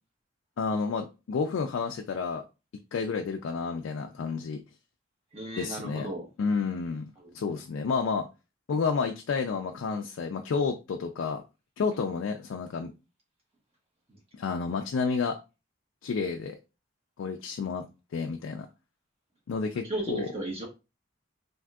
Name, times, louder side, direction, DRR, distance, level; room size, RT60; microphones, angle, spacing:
voice 1, 0.6-2.4 2.9-4.6 5.6-6.1 6.4-7.1 7.3-8.3 8.7-11.4 11.8-12.9 14.3-15.4 16.0-16.6 17.2-17.9 18.1-18.7 19.5-20.3, left 5 dB, 75° left, 0.3 m, -30 dB
voice 2, 5.3-6.3 7.2-7.3 14.1-14.2 19.8-20.6, right 1 dB, 30° right, 1.0 m, -35 dB
3.5 x 2.6 x 2.3 m
head